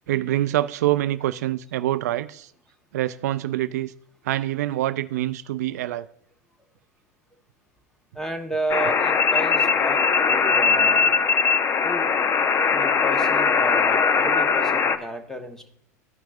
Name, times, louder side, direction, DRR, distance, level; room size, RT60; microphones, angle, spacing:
voice 1, 0.1-2.5 2.9-3.9 4.2-6.1, right 14 dB, 75° right, 0.4 m, -25 dB
voice 2, 8.1-11.1 11.8-12.1 12.7-15.7, right 1 dB, 5° left, 1.2 m, -32 dB
sound 1, 8.7-15.0, left 5 dB, 30° left, 0.7 m, -20 dB
14.0 x 5.8 x 2.5 m
hypercardioid pair, 90°, 9 cm